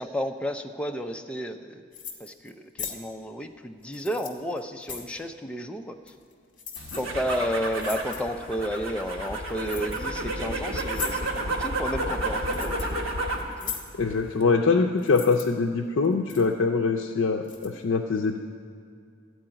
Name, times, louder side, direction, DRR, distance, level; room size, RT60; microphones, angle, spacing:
voice 1, 0.0-1.8 2.2-6.0 7.0-11.2 11.5-13.1 13.6-13.7, equal, 5° left, 4 dB, 0.5 m, -32 dB
sound 1, 1.9-2.5 2.8-3.0 3.8-5.1 6.1-6.3 6.6-7.0 7.3-7.4 7.7-8.3 9.6-10.2 10.7-11.5 12.1-13.0 13.3-13.9 15.0-15.4 16.0-16.5 17.4-17.7, left 7 dB, 40° left, 1.3 m, -38 dB
sound 2, 6.8-13.5 13.9-14.4, right 1 dB, 80° right, 1.3 m, -31 dB
voice 2, 14.0-18.4, left 4 dB, 70° left, 2 dB, 0.5 m, -23 dB
13.5 x 4.7 x 8.8 m, 2.3 s
head